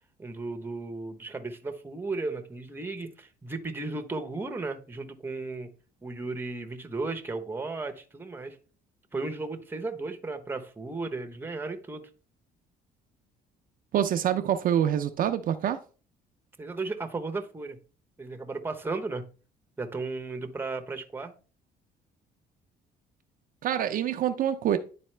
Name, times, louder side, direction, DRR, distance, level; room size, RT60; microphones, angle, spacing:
voice 1, 0.2-5.7 6.0-8.6 9.1-12.1 16.6-17.8 18.2-19.2 19.8-21.3, right 3 dB, 10° right, 0.9 m, -35 dB
voice 2, 13.9-15.8 23.6-24.8, right 10 dB, 55° right, 0.5 m, -26 dB
10.0 x 4.0 x 3.2 m
cardioid pair, 110°, 17 cm